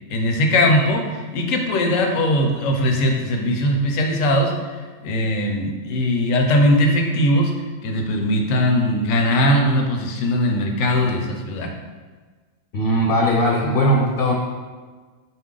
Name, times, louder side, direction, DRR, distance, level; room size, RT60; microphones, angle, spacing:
voice 1, 0.1-4.5 5.0-7.5 7.8-11.7, left 1 dB, 90° left, 3 dB, 1.0 m, -20 dB
voice 2, 12.7-14.3, equal, 60° left, -2 dB, 0.6 m, -19 dB
4.0 x 2.7 x 3.7 m, 1.4 s
omnidirectional pair, 1.3 m